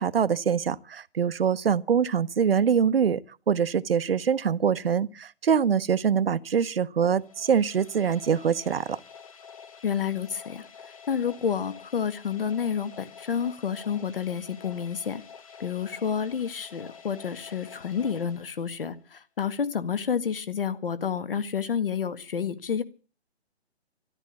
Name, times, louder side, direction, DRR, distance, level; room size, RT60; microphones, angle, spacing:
voice 1, 0.0-3.2 3.5-9.0, right 7 dB, 60° right, 0.9 m, -24 dB
sound 1, 7.1-19.0, left 6 dB, 30° left, 1.3 m, -48 dB
voice 2, 9.8-10.7 11.1-15.2 15.6-22.8, left 7 dB, 55° left, 1.7 m, -29 dB
13.0 x 12.5 x 8.3 m
hypercardioid pair, 170°, 33 cm